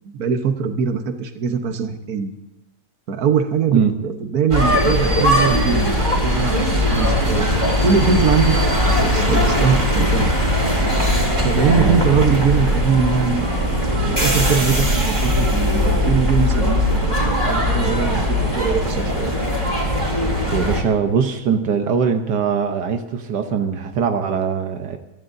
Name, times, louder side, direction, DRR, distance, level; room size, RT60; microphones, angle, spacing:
voice 1, 0.1-2.3 3.1-7.5 7.8-10.3 11.4-13.4 14.1-19.3, right 6 dB, 65° right, 6 dB, 1.6 m, -21 dB
sound 1, 4.5-20.8, left 1 dB, 30° right, 4.0 m, -19 dB
voice 2, 11.7-12.2 20.5-25.0, right 6 dB, 80° right, 6 dB, 1.6 m, -21 dB
24.5 x 14.0 x 2.7 m, 1.0 s
omnidirectional pair, 1.8 m